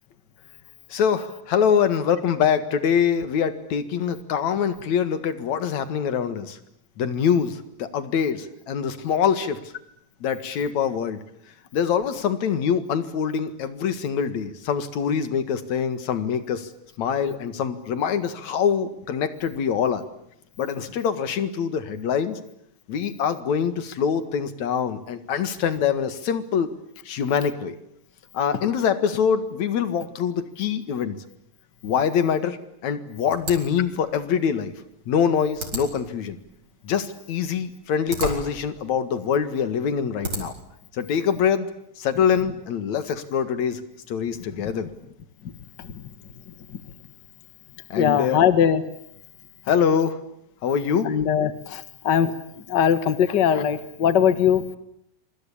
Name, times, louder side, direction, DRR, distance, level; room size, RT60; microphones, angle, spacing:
voice 1, 0.9-6.6 7.0-9.6 10.2-11.2 11.7-16.7 17.0-20.0 20.6-22.4 22.9-26.7 27.1-27.8 28.3-31.2 31.8-32.6 32.8-34.7 35.1-36.4 36.8-40.5 40.9-41.7 42.0-44.9 47.9-48.4 49.7-50.2 50.6-51.1, left 7 dB, 75° left, 11 dB, 3.1 m, -24 dB
sound 1, 33.3-40.8, right 2 dB, 40° right, 5.6 m, -37 dB
voice 2, 48.0-48.8 51.0-52.3 52.7-54.6, left 8 dB, 45° left, 11 dB, 1.9 m, -20 dB
26.5 x 25.0 x 8.7 m, 0.76 s
omnidirectional pair, 3.3 m